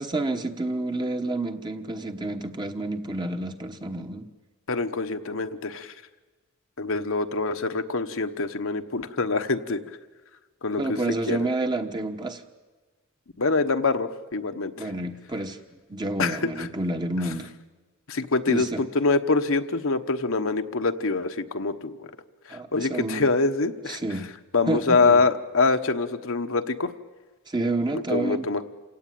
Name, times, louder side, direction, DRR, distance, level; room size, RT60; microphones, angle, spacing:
voice 1, 0.0-4.3 10.8-12.4 14.8-15.6 15.9-17.5 18.5-18.8 22.5-23.2 23.9-24.3 24.7-25.2 27.5-28.5, right 2 dB, 20° right, 6 dB, 1.2 m, -29 dB
voice 2, 4.7-5.9 6.8-9.8 10.6-11.0 11.3-11.4 13.4-14.9 16.2-16.7 18.1-22.1 22.5-24.2 24.5-26.9 27.9-28.7, left 3 dB, 65° left, 7 dB, 1.1 m, -25 dB
28.0 x 17.5 x 9.3 m, 1.3 s
head